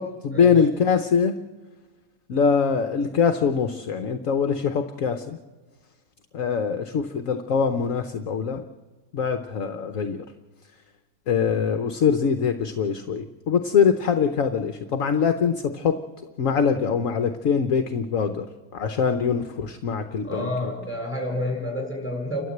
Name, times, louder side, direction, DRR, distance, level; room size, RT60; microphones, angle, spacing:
voice 1, 0.0-1.3 2.3-5.4 6.3-8.6 9.1-10.2 11.3-15.9 16.4-18.5 18.7-20.5, left 6 dB, 60° left, 7 dB, 1.2 m, -23 dB
voice 2, 20.2-22.4, left 1 dB, 5° left, 0 dB, 7.1 m, -29 dB
29.5 x 12.5 x 8.0 m, 1.4 s
omnidirectional pair, 1.7 m